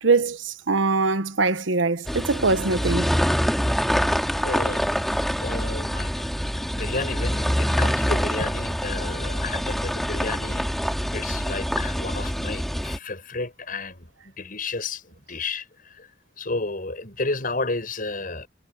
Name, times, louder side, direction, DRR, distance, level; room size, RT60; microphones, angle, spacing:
voice 1, 0.0-3.1, right 3 dB, 85° right, 1.1 m, -22 dB
sound 1, 2.1-13.0, equal, ahead, 2.3 m, -25 dB
voice 2, 4.4-5.0 5.4-6.3 6.7-10.7 11.1-16.1 16.4-18.5, left 3 dB, 50° left, 6.5 m, -32 dB
head